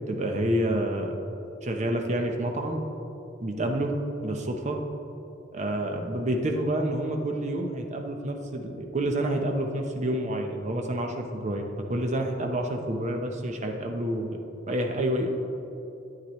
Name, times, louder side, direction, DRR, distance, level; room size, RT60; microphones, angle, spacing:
voice 1, 0.1-1.2 1.6-2.8 3.4-3.9 4.2-4.8 5.5-14.4 14.7-15.3, right 1 dB, 35° right, 3 dB, 0.8 m, -28 dB
11.5 x 9.3 x 3.1 m, 3.0 s
head